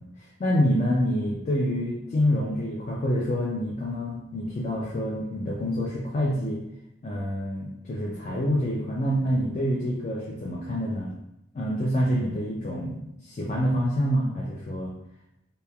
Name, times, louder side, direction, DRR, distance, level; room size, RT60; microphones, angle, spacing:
voice 1, 0.0-6.6 7.0-11.1 11.5-14.9, equal, 35° left, -5 dB, 0.3 m, -27 dB
2.9 x 2.1 x 2.2 m, 0.84 s
head